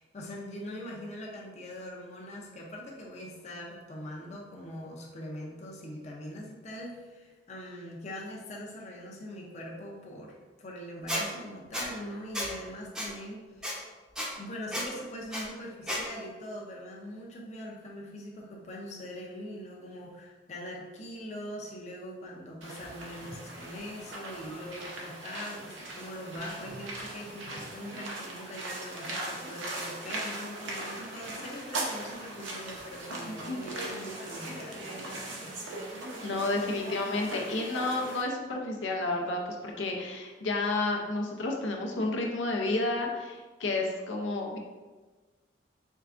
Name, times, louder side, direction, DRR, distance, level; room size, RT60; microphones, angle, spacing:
voice 1, 0.0-13.7 14.4-35.5, equal, 35° left, -2 dB, 0.6 m, -42 dB
Squeak, 11.1-11.2 11.7-11.9 12.3-12.5 13.0-13.1 13.6-13.7 14.2-14.3 14.7-14.9 15.3-15.4 15.9-16.0, equal, 5° right, 0.6 m, -32 dB
sound 1, 22.6-38.2, right 2 dB, 85° right, 0.8 m, -39 dB
voice 2, 33.2-33.6 36.2-44.6, left 2 dB, 85° left, 0 dB, 0.6 m, -31 dB
4.5 x 3.3 x 2.5 m, 1.3 s
head